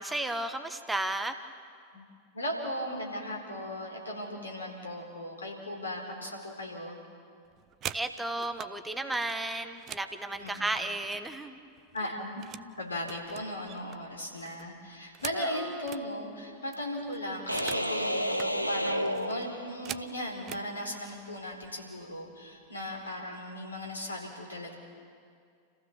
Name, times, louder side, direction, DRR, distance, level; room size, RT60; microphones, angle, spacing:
voice 1, 0.0-1.4 7.9-11.6 12.0-12.1 15.3-15.7, right 2 dB, 10° right, 8 dB, 1.1 m, -34 dB
voice 2, 2.3-7.0 10.4-10.7 11.9-12.4 12.8-24.7, left 1 dB, 75° left, 1 dB, 4.3 m, -37 dB
sound 1, 7.5-8.7 9.1-11.5 11.8-12.7 13.0-16.1 16.4-16.5 16.7-17.9 18.2-18.5 19.1-20.7 21.5-21.7 22.0-22.3 22.6-23.2, right 11 dB, 30° right, 0.6 m, -44 dB
sound 2, 17.5-20.1, equal, 90° right, 0.9 m, -31 dB
29.5 x 15.5 x 7.1 m, 2.3 s
figure-of-eight pair, 90°, 0 cm